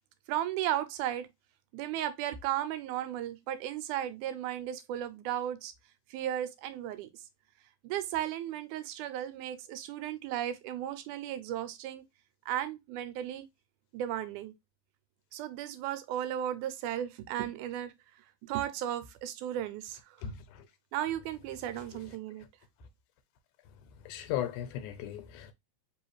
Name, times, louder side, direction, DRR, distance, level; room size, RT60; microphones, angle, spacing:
voice 1, 0.3-1.3 1.7-5.7 6.1-7.2 7.8-12.0 12.5-13.5 13.9-14.5 15.3-17.9 18.4-20.2 20.9-22.4, right 12 dB, 85° right, 2.1 m, -35 dB
voice 2, 24.1-25.5, left 11 dB, 90° left, 2.2 m, -36 dB
4.6 x 3.1 x 3.1 m
omnidirectional pair, 3.4 m